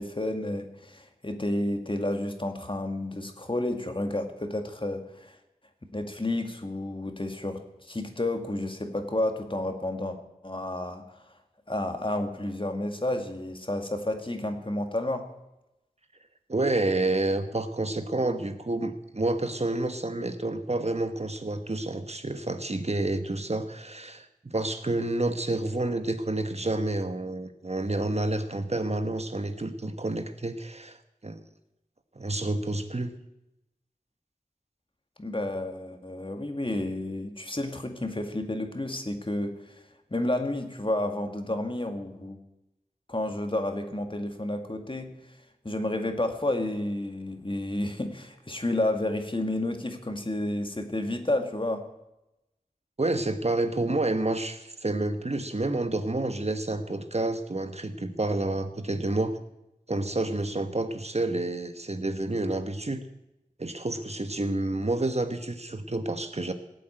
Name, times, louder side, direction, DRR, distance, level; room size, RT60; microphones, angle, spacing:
voice 1, 0.0-5.4 5.9-10.2 10.4-11.2 11.7-15.3 35.2-39.8 40.1-42.4 43.1-45.4 45.6-51.9, left 1 dB, 35° left, 6 dB, 2.0 m, -31 dB
voice 2, 16.5-31.4 32.2-33.1 53.0-59.4 59.9-63.0 63.6-66.5, right 2 dB, 45° right, 8 dB, 1.2 m, -29 dB
17.5 x 7.6 x 9.1 m, 0.92 s
wide cardioid pair, 55°, 15 cm